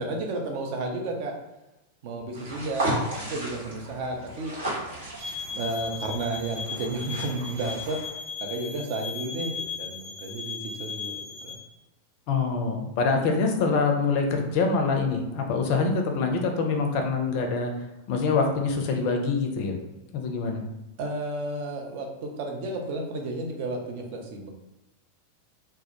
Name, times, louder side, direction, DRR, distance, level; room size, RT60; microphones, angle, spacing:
voice 1, 0.0-1.4 2.0-4.6 5.5-11.6 21.0-24.5, right 2 dB, 45° right, 2 dB, 0.4 m, -32 dB
sound 1, 2.3-8.1, right 1 dB, 65° right, 0.9 m, -34 dB
sound 2, 5.2-11.6, left 5 dB, ahead, 0.8 m, -37 dB
voice 2, 12.3-17.7 18.1-19.8 20.1-20.6, left 4 dB, 45° left, 3 dB, 0.4 m, -25 dB
2.1 x 2.1 x 2.7 m, 0.97 s
figure-of-eight pair, 90°, 0 cm